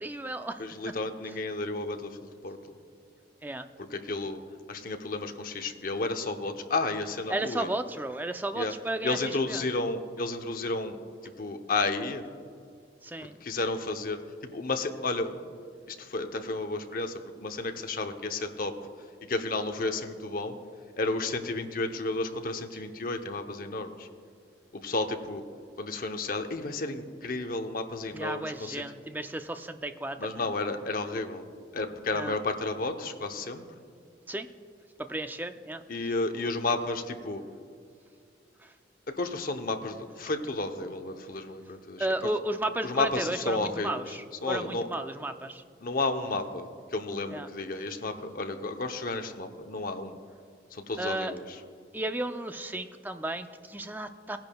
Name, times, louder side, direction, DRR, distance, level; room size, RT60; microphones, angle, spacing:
voice 1, 0.0-0.9 3.4-3.7 7.3-9.2 9.5-9.6 13.0-13.4 28.1-30.4 32.1-32.4 34.3-34.5 35.0-35.8 38.6-38.7 42.0-45.6 47.3-47.5 51.0-51.3 51.9-54.4, right 1 dB, 10° right, 8 dB, 0.4 m, -34 dB
voice 2, 0.6-2.6 3.8-4.4 4.7-7.7 8.5-8.7 9.0-11.0 11.2-12.2 13.4-15.4 15.9-18.7 19.2-20.6 21.0-24.1 24.7-25.4 25.8-28.8 30.2-31.5 31.7-33.6 35.9-37.4 39.1-42.1 42.8-44.9 45.8-50.2 50.7-51.6, left 3 dB, 50° left, 6 dB, 0.7 m, -32 dB
18.5 x 10.5 x 2.3 m, 2.3 s
head